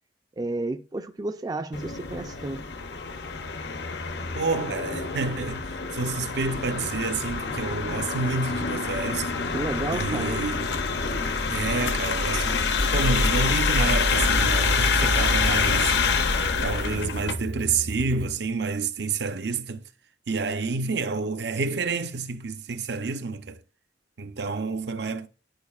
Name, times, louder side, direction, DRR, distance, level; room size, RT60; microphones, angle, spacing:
voice 1, 0.4-2.7 9.5-10.5, right 2 dB, 20° right, 0.4 m, -31 dB
sound 1, 1.7-17.3, left 5 dB, 70° left, 0.7 m, -27 dB
voice 2, 4.3-9.3 9.9-10.7 11.5-16.0 16.6-19.8 20.3-23.6 24.2-25.3, right 4 dB, 65° right, 0.7 m, -29 dB
sound 2, 12.7-18.3, equal, 90° right, 1.2 m, -29 dB
10.5 x 4.2 x 2.4 m
head